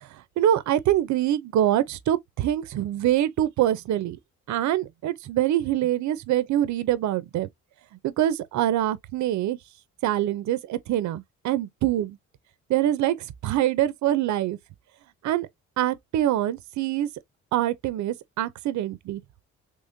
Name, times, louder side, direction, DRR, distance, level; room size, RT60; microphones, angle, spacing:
voice 1, 0.4-4.2 4.5-7.5 8.0-9.6 10.0-12.2 12.7-14.6 15.2-15.5 15.8-17.1 17.5-19.2, right 12 dB, 70° right, 0.6 m, -24 dB
3.6 x 3.1 x 2.6 m
cardioid pair, 90°, 30 cm